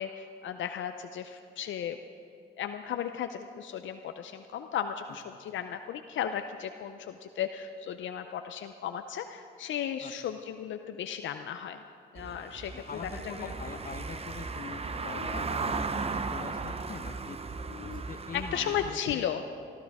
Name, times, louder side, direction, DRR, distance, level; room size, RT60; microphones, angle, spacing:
voice 1, 0.0-2.0 2.6-11.8 12.1-13.3 15.1-15.8 17.7-18.0 18.3-19.4, left 9 dB, 75° left, 7 dB, 0.6 m, -35 dB
Car passing by / Engine, 12.2-18.9, right 4 dB, 30° right, 0.8 m, -36 dB
voice 2, 12.7-17.4 17.8-19.3, left 5 dB, 45° left, 10 dB, 0.9 m, -43 dB
20.5 x 13.5 x 3.6 m, 2.6 s
cardioid pair, 70°, 20 cm